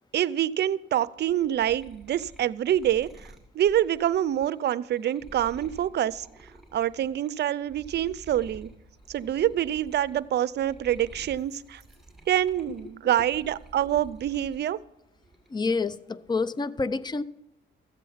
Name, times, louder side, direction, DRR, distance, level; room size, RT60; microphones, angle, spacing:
voice 1, 0.1-3.1 3.5-6.3 6.7-8.7 9.1-11.8 12.3-14.8, right 11 dB, 60° right, 19 dB, 0.5 m, -26 dB
sound 1, 1.1-7.3 7.6-14.6 15.0-15.7, right 2 dB, ahead, 2.1 m, -51 dB
voice 2, 15.5-17.2, left 4 dB, 20° left, 17 dB, 0.5 m, -28 dB
14.0 x 8.2 x 5.7 m, 0.86 s
cardioid pair, 90°, 20 cm